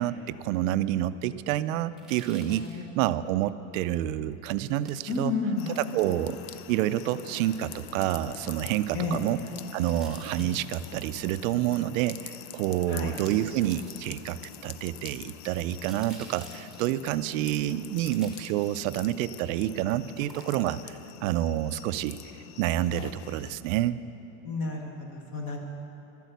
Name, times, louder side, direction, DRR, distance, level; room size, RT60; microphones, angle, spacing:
voice 1, 0.0-2.7 3.0-5.3 5.8-6.4 6.7-9.4 9.7-22.2 22.6-24.0, right 13 dB, 65° right, 14 dB, 0.5 m, -28 dB
sound 1, 1.9-2.8 4.6-5.3 7.5-7.9 9.7-10.8 12.4-12.5 13.1-14.3 15.5-17.0 17.9-19.0 20.1-20.8 21.2-21.3, right 2 dB, ahead, 1.1 m, -51 dB
voice 2, 2.4-2.8 5.1-5.8 8.9-9.2 10.4-10.5 12.9-13.1 24.4-25.6, left 4 dB, 30° left, 1 dB, 1.2 m, -31 dB
sound 2, 5.6-23.5, left 11 dB, 50° left, 0.5 m, -45 dB
12.5 x 8.3 x 8.0 m, 2.9 s
cardioid pair, 180°, 42 cm